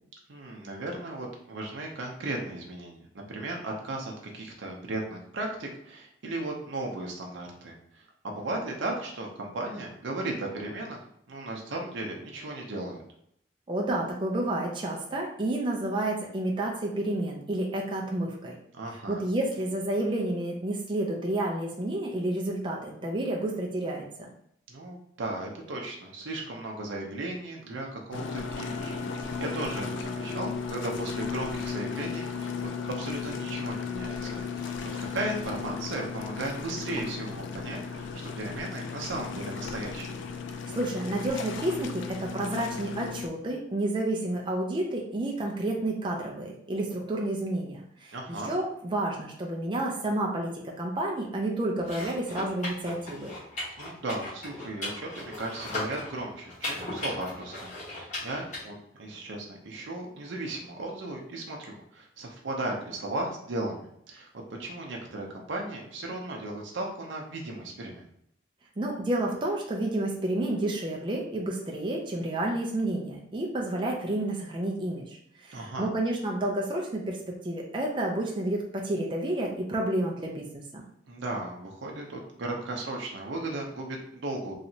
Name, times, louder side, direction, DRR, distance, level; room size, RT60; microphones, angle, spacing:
voice 1, 0.3-11.0 11.3-13.0 18.7-19.2 24.7-32.5 32.8-40.2 48.1-48.5 53.8-68.0 75.5-75.9 81.1-84.5, right 2 dB, 75° right, 0 dB, 0.6 m, -36 dB
voice 2, 13.7-18.5 19.1-24.3 40.7-53.3 68.8-77.2 77.4-80.8, right 1 dB, 25° right, -1 dB, 0.4 m, -30 dB
sound 1, 28.1-43.3, left 5 dB, 75° left, 0.4 m, -35 dB
sound 2, 51.8-58.6, left 2 dB, 40° left, 1.2 m, -38 dB
3.1 x 2.8 x 2.7 m, 0.71 s
head